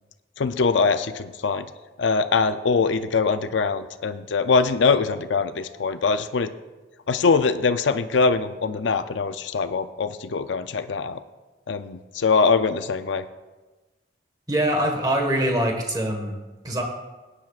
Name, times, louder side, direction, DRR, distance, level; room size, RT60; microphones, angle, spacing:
voice 1, 0.4-1.7 2.0-6.5 7.1-11.2 11.7-13.2, left 4 dB, 85° left, 11 dB, 0.5 m, -22 dB
voice 2, 14.5-16.4 16.6-16.8, right 1 dB, 20° right, 2 dB, 1.5 m, -23 dB
17.5 x 9.9 x 2.4 m, 1.2 s
head